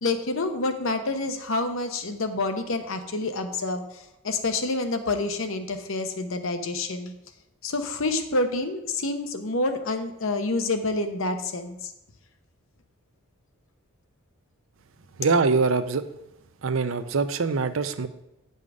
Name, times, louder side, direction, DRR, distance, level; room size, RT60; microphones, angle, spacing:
voice 1, 0.0-7.1 7.6-11.9, left 2 dB, 70° left, 7 dB, 0.9 m, -28 dB
voice 2, 15.2-16.0 16.6-18.1, right 4 dB, 65° right, 11 dB, 0.6 m, -23 dB
9.4 x 5.6 x 4.9 m, 0.90 s
head